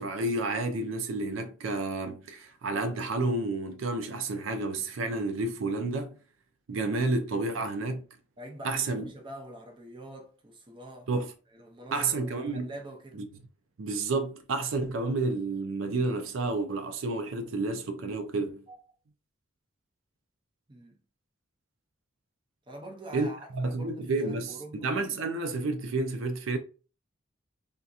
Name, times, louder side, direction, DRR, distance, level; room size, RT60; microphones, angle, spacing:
voice 1, 0.0-6.2 6.7-8.0 8.6-9.1 11.1-11.3 11.9-12.7 13.8-18.6 23.1-26.6, right 3 dB, 75° right, 0.5 m, -30 dB
voice 2, 8.4-11.1 11.5-13.2 18.7-18.9 20.7-21.0 22.7-24.9, right 1 dB, 25° right, 0.6 m, -45 dB
3.6 x 2.7 x 2.4 m
head